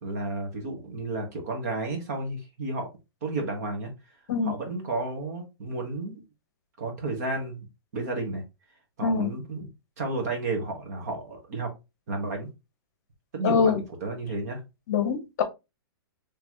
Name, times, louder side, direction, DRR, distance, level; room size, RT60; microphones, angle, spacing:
voice 1, 0.0-2.9 3.2-3.9 4.4-6.2 6.8-8.4 9.0-9.7 10.0-11.7 12.1-12.5 13.3-13.7 14.0-14.6, right 2 dB, 40° right, 3 dB, 1.5 m, -32 dB
voice 2, 9.0-9.3 13.4-13.8 14.9-15.4, left 5 dB, 45° left, 8 dB, 0.9 m, -24 dB
4.0 x 3.3 x 3.1 m, 0.25 s
hypercardioid pair, 175°, 13 cm